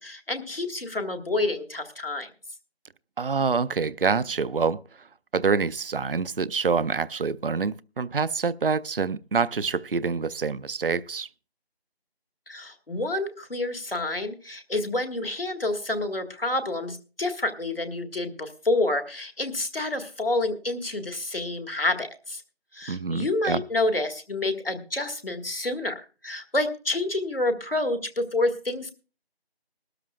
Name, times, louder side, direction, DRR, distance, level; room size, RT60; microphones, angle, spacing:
voice 1, 0.0-2.3 12.5-22.4 22.7-28.9, left 2 dB, 65° left, 7 dB, 1.8 m, -28 dB
voice 2, 3.2-4.8 5.3-11.3 22.9-23.6, right 5 dB, 60° right, 19 dB, 0.5 m, -26 dB
20.5 x 13.0 x 2.3 m, 0.35 s
figure-of-eight pair, 170°, 31 cm